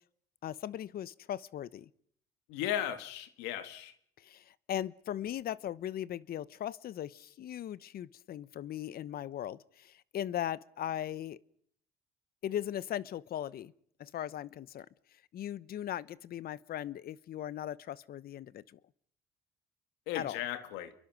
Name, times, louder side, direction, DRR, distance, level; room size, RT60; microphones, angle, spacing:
voice 1, 0.4-1.9 4.2-11.4 12.4-13.7 14.0-14.9 15.3-18.8 20.1-20.4, left 11 dB, 60° left, 0.9 m, -38 dB
voice 2, 2.5-3.9 20.1-20.9, left 11 dB, 90° left, 1.9 m, -36 dB
29.0 x 23.0 x 6.2 m
supercardioid pair, 75°, 17 cm